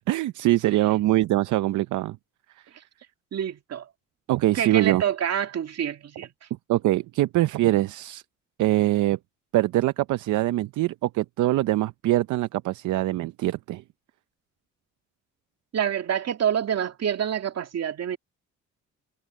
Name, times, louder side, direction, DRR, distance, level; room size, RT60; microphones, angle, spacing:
voice 1, 0.1-2.2 4.3-5.0 6.7-8.2 8.6-9.2 9.5-13.8, right 15 dB, 80° right, 0.6 m, -23 dB
voice 2, 3.3-3.8 4.5-6.3 15.7-18.2, right 9 dB, 60° right, 2.3 m, -27 dB
cardioid pair, 90°, 30 cm